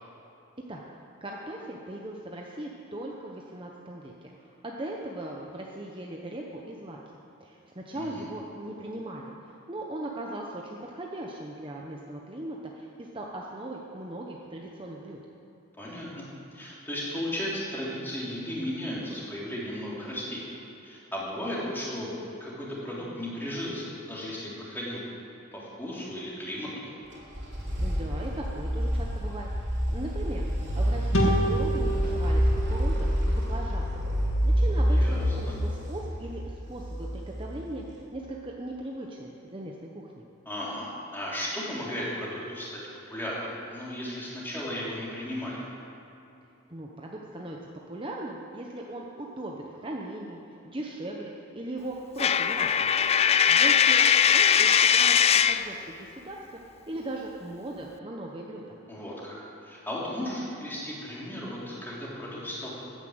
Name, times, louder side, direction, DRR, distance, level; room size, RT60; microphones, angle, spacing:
voice 1, 1.2-7.0 7.4-15.2 27.8-30.4 30.7-34.0 34.4-40.2 46.7-47.6 47.9-52.9 53.5-55.2 55.5-56.6 56.9-58.8, right 1 dB, 25° right, -1 dB, 0.9 m, -39 dB
voice 2, 7.9-8.2 15.8-20.5 20.8-25.0 25.5-26.9 34.9-35.5 40.4-42.8 43.1-45.6 58.9-62.8, left 1 dB, 10° left, -6 dB, 3.4 m, -35 dB
sound 1, 27.1-37.9, equal, 55° right, 4.0 m, -28 dB
sound 2, 31.1-34.5, right 1 dB, 85° left, 2.2 m, -30 dB
Coin (dropping), 52.2-55.7, left 8 dB, 30° left, 0.3 m, -20 dB
14.0 x 9.9 x 8.0 m, 2.8 s
head